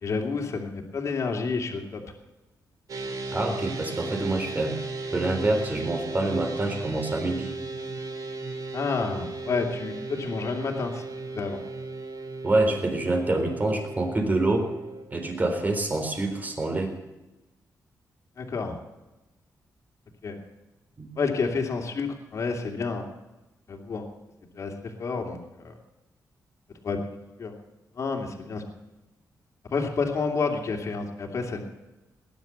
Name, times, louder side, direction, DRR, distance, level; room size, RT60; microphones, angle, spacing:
voice 1, 0.0-2.0 8.7-11.0 11.3-11.6 18.4-18.8 20.2-20.4 21.2-23.1 23.7-24.1 24.5-25.7 26.8-27.0 27.4-27.5 28.0-28.6 29.7-31.6, left 4 dB, 50° left, 2 dB, 2.7 m, -29 dB
sound 1, 2.9-15.0, right 3 dB, 60° right, 3.0 m, -36 dB
voice 2, 3.3-4.7 5.1-7.5 12.4-14.7 15.1-16.9 21.0-21.1, right 2 dB, 25° right, 4 dB, 3.8 m, -26 dB
19.5 x 11.0 x 7.0 m, 1.0 s
wide cardioid pair, 135°, 7 cm